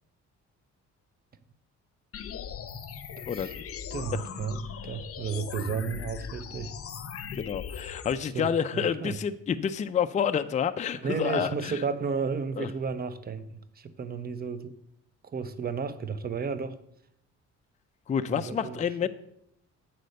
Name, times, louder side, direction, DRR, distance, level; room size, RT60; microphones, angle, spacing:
sound 1, 2.1-8.1, left 7 dB, 50° left, 0.7 m, -39 dB
voice 1, 3.2-3.5 3.9-6.7 8.2-9.2 10.9-13.5 13.8-14.8 15.2-16.8 18.3-19.1, right 5 dB, 30° right, 12 dB, 0.7 m, -33 dB
voice 2, 7.4-11.8 12.6-12.7 18.1-19.1, left 7 dB, 25° left, 9 dB, 0.4 m, -29 dB
7.9 x 4.3 x 6.4 m, 0.76 s
cardioid pair, 90°, 30 cm